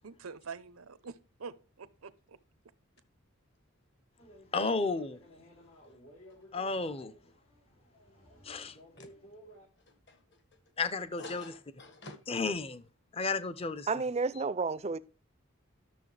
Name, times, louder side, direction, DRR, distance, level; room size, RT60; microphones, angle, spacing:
voice 1, 0.0-2.4, right 5 dB, 90° right, 0.7 m, -46 dB
sound 1, 4.2-9.7, equal, 85° left, 3.0 m, -55 dB
voice 2, 4.5-5.2 6.5-7.1 8.5-8.7 10.8-11.4 12.3-12.8 13.1-13.9, left 4 dB, 25° left, 0.6 m, -32 dB
voice 3, 9.8-10.4 11.2-12.2 14.3-14.4, left 2 dB, 55° left, 1.7 m, -49 dB
voice 4, 13.9-15.0, right 4 dB, 30° right, 0.4 m, -31 dB
12.0 x 6.9 x 3.3 m
head